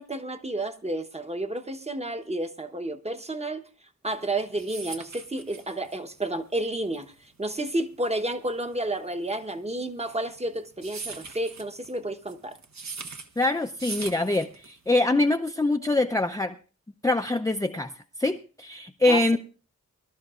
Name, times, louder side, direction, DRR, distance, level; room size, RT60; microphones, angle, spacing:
voice 1, 0.0-3.6 4.0-12.6 19.1-19.4, right 1 dB, 20° right, 7 dB, 1.0 m, -31 dB
sound 1, 4.2-15.0, right 4 dB, 65° right, 1.1 m, -41 dB
voice 2, 13.4-16.5 17.0-17.9 18.2-19.4, left 2 dB, 10° left, 5 dB, 0.5 m, -24 dB
23.5 x 12.0 x 2.4 m, 0.38 s
wide cardioid pair, 90°, 30 cm